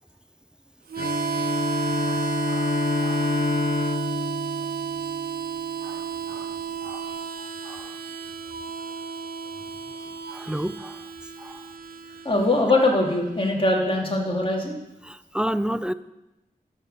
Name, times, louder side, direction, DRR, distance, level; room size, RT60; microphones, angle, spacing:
Harmonica, 0.9-13.5, right 7 dB, 90° right, 0.7 m, -32 dB
Bowed string instrument, 1.0-5.7, left 4 dB, 55° left, 0.6 m, -28 dB
voice 1, 5.8-6.5 6.8-7.1 7.6-7.9 10.3-11.0 11.4-11.6 15.0-15.9, equal, 5° right, 14 dB, 0.4 m, -31 dB
voice 2, 12.2-14.8, left 2 dB, 35° left, -1 dB, 2.4 m, -22 dB
13.0 x 4.5 x 6.6 m, 0.95 s
wide cardioid pair, 65°, 15 cm